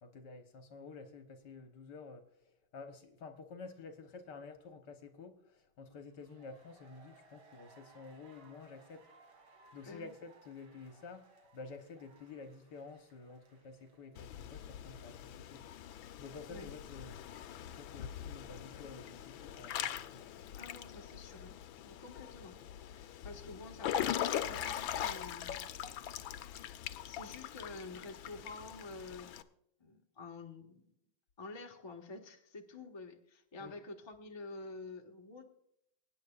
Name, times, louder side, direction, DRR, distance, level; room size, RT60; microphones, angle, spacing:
voice 1, 0.0-9.1 9.7-11.3 11.5-15.7 16.2-17.4 17.7-20.3 33.6-33.7, left 4 dB, 60° left, 1.6 m, -51 dB
sound 1, 6.0-16.8 17.1-17.2, right 4 dB, 85° right, 3.0 m, -64 dB
Water / Splash splatter / Drip, 14.2-29.4, left 10 dB, 75° left, 1.4 m, -41 dB
voice 2, 20.5-25.7 26.5-29.4 29.8-30.9 31.4-35.4, left 3 dB, 15° left, 1.0 m, -49 dB
23.5 x 10.0 x 2.4 m
omnidirectional pair, 2.2 m